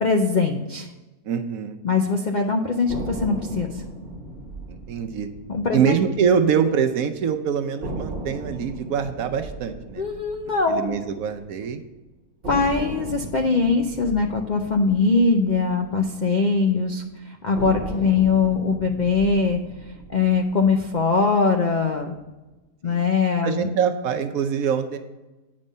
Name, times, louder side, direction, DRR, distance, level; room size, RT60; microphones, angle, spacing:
voice 1, 0.0-0.9 1.8-3.8 5.5-6.0 10.0-11.0 12.5-22.2 22.8-23.7, left 4 dB, 55° left, 3 dB, 0.4 m, -22 dB
voice 2, 1.2-1.8 4.7-5.3 5.7-10.0 10.7-11.8 20.1-20.2 22.8-23.1 23.4-25.0, right 7 dB, 70° right, 8 dB, 1.1 m, -24 dB
sound 1, 2.9-7.0 7.2-7.3 7.8-11.9 12.4-16.8 17.5-21.9, right 2 dB, 40° right, 1.3 m, -37 dB
8.8 x 5.2 x 5.3 m, 1.1 s
omnidirectional pair, 1.6 m